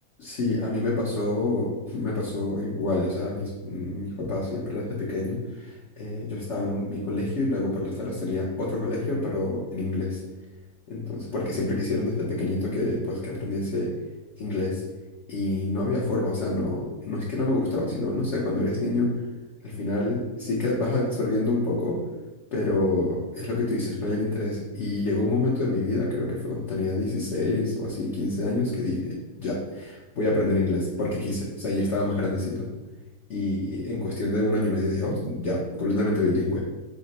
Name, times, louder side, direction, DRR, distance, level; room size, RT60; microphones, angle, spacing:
voice 1, 0.2-10.2 10.9-13.9 14.4-14.8 15.3-19.1 19.6-22.0 22.5-32.7 33.3-36.6, left 2 dB, 55° left, -6 dB, 0.9 m, -27 dB
5.1 x 2.0 x 4.0 m, 1.1 s
omnidirectional pair, 1.7 m